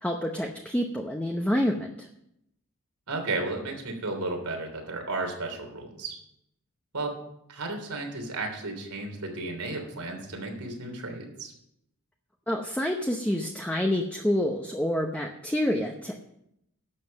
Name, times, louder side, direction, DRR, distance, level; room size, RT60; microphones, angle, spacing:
voice 1, 0.0-2.1 12.5-16.2, left 1 dB, 5° left, 1 dB, 0.8 m, -28 dB
voice 2, 3.1-6.2 6.9-7.2 7.5-11.5, right 2 dB, 90° right, 3 dB, 3.3 m, -33 dB
12.0 x 7.8 x 6.5 m, 0.78 s
head